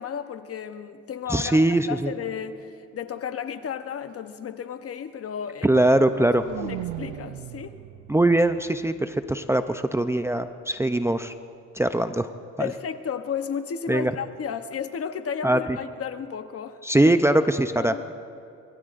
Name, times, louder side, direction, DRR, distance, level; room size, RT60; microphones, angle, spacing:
voice 1, 0.0-5.7 6.6-7.8 12.6-16.8 17.7-18.0, left 7 dB, 50° left, 10 dB, 0.9 m, -33 dB
voice 2, 1.3-2.1 5.6-6.4 8.1-11.3 11.7-12.3 12.6-12.7 13.9-14.1 15.4-15.6 16.8-18.1, right 1 dB, 10° right, 9 dB, 0.5 m, -21 dB
sound 1, 5.6-9.6, right 14 dB, 90° right, 0.6 m, -39 dB
25.0 x 21.5 x 2.6 m, 2.5 s
cardioid pair, 90°, 30 cm